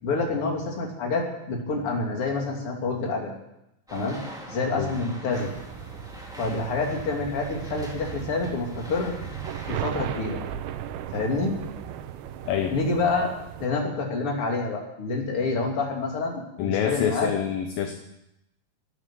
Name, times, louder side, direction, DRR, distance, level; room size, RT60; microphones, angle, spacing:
voice 1, 0.0-3.3 3.9-4.2 4.5-5.5 6.4-9.1 9.7-10.4 11.1-11.6 12.7-13.3 13.6-17.3, left 3 dB, 35° left, 0 dB, 3.0 m, -27 dB
sound 1, 3.9-9.9, equal, ahead, 1.6 m, -44 dB
sound 2, 5.3-13.7, right 10 dB, 90° right, 3.1 m, -37 dB
voice 2, 16.6-17.9, left 9 dB, 75° left, 5 dB, 2.3 m, -27 dB
13.0 x 9.4 x 9.3 m, 0.85 s
omnidirectional pair, 5.1 m